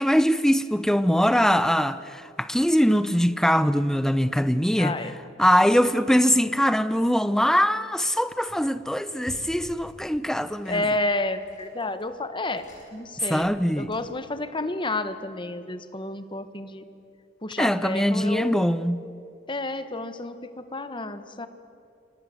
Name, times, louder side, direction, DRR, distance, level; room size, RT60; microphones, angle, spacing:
voice 1, 0.0-5.0 5.4-10.8 13.2-13.9 17.6-19.0, equal, 5° left, 0.8 m, -22 dB
voice 2, 4.8-5.1 10.6-12.7 12.9-13.5 13.8-16.8 17.4-18.6 19.5-21.5, left 2 dB, 25° left, 1.3 m, -30 dB
sound 1, 8.3-8.8 9.2-14.3, equal, 45° left, 7.8 m, -49 dB
28.5 x 25.0 x 7.8 m
head